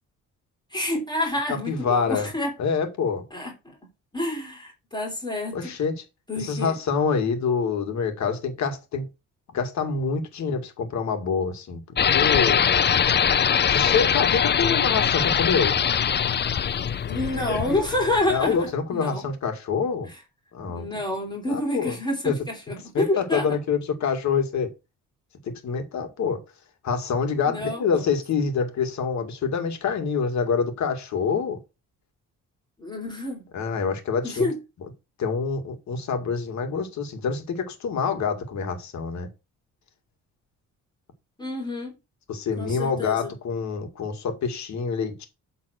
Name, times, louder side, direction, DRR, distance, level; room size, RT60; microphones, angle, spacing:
voice 1, 0.7-2.5 3.3-3.8 4.1-5.7 6.3-6.8 17.1-19.3 20.1-20.2 20.7-23.5 27.4-28.0 32.8-33.4 34.2-34.6 41.4-41.9 42.6-43.3, left 1 dB, 15° left, 3.3 m, -28 dB
voice 2, 1.5-2.3 2.6-3.3 5.5-5.9 6.4-9.1 9.5-11.8 12.1-12.6 13.7-15.8 18.3-20.1 20.5-20.9 21.5-22.0 22.2-22.3 22.9-24.7 25.4-26.4 26.8-31.6 33.5-34.5 35.2-39.3 42.3-45.3, left 5 dB, 65° left, 2.0 m, -26 dB
sound 1, 12.0-18.6, left 8 dB, 35° left, 0.6 m, -22 dB
7.6 x 4.0 x 6.3 m
cardioid pair, 90°, 30 cm